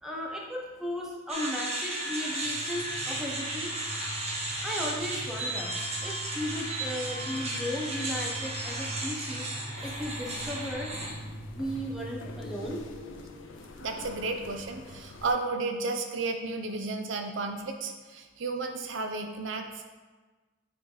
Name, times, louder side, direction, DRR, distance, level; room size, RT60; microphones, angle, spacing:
voice 1, 0.0-5.7 6.0-9.5 9.8-10.9 11.5-12.8, equal, 5° right, -2 dB, 0.8 m, -36 dB
sound 1, 1.3-11.1, right 1 dB, 30° right, 0.9 m, -34 dB
sound 2, 2.4-12.8, right 1 dB, 40° left, 1.2 m, -42 dB
sound 3, 9.8-15.3, left 2 dB, 70° left, 0.6 m, -46 dB
voice 2, 13.8-19.9, right 3 dB, 65° right, 5 dB, 0.5 m, -33 dB
8.7 x 3.2 x 3.9 m, 1.3 s
head